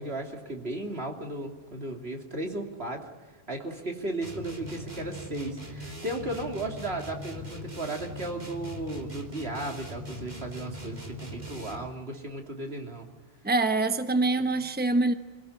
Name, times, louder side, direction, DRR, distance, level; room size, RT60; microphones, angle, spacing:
voice 1, 0.0-3.0 3.5-13.1 14.5-14.7, right 2 dB, 70° right, 3.2 m, -35 dB
sound 1, 4.2-12.0, left 1 dB, 45° right, 2.8 m, -41 dB
voice 2, 13.4-15.1, right 2 dB, 10° right, 1.1 m, -25 dB
26.0 x 17.5 x 10.0 m
omnidirectional pair, 1.1 m